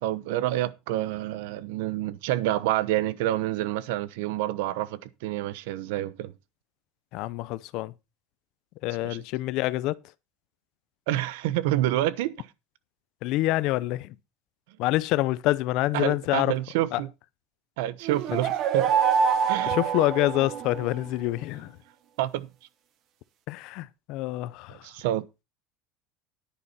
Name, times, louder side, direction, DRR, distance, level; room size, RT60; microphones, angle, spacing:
voice 1, 0.0-6.3 9.0-9.2 11.1-12.5 15.9-17.1 17.8-18.9 19.5-19.8 22.2-22.5 24.7-25.2, right 14 dB, 80° right, 0.9 m, -28 dB
voice 2, 7.1-7.9 8.8-9.9 13.2-14.1 14.8-16.5 16.9-17.0 19.7-21.7 23.5-24.8, left 17 dB, 55° left, 0.6 m, -26 dB
sound 1, 18.0-20.9, right 7 dB, 40° right, 1.3 m, -25 dB
10.0 x 9.7 x 4.2 m
cardioid pair, 165°, 0 cm